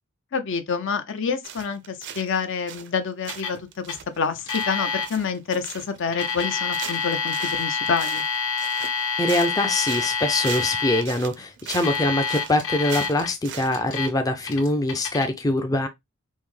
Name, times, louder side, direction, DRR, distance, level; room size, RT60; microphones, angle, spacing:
voice 1, 0.3-3.6 3.9-8.2, left 5 dB, 60° left, 0.6 m, -27 dB
sound 1, 1.4-2.4 2.7-3.0 3.3-13.8, right 9 dB, 55° right, 0.5 m, -39 dB
Alarm, 3.3-3.6 3.9-4.0 4.5-5.1 6.0-11.0 11.7-13.3 13.7-14.1 14.4-15.3, left 5 dB, 85° left, 1.5 m, -27 dB
voice 2, 9.2-15.9, left 1 dB, 15° left, 0.4 m, -23 dB
5.5 x 2.1 x 3.1 m
head